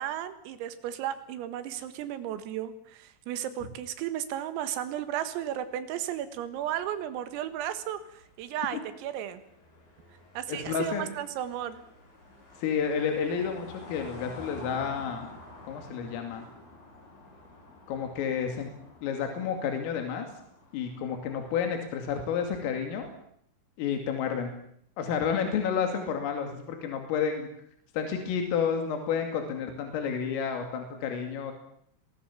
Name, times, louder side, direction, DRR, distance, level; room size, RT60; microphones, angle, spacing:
voice 1, 0.0-9.4 10.4-11.8, right 11 dB, 90° right, 11 dB, 4.3 m, -34 dB
sound 1, 5.5-21.9, left 2 dB, 45° left, 9.0 m, -50 dB
voice 2, 10.5-11.1 12.6-15.3 15.7-16.4 17.9-18.7 19.0-20.3 20.7-23.1 23.8-24.5 25.0-27.5 28.0-31.5, left 7 dB, 80° left, 5 dB, 5.2 m, -30 dB
27.5 x 20.5 x 7.4 m, 0.67 s
omnidirectional pair, 6.0 m